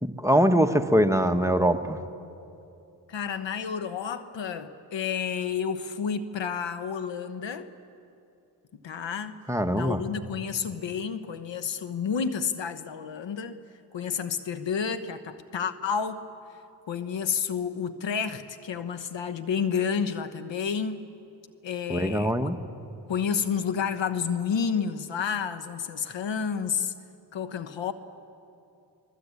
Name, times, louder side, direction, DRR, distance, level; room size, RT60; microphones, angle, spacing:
voice 1, 0.0-2.0 9.5-10.0 21.9-22.6, equal, 5° right, 6 dB, 1.4 m, -23 dB
voice 2, 3.1-7.7 8.8-9.4 9.7-13.6 13.9-16.2 16.9-21.0 21.6-22.5 23.1-26.9 27.3-27.9, left 6 dB, 75° left, 11 dB, 1.2 m, -30 dB
23.0 x 21.5 x 8.5 m, 2.6 s
cardioid pair, 45°, 45 cm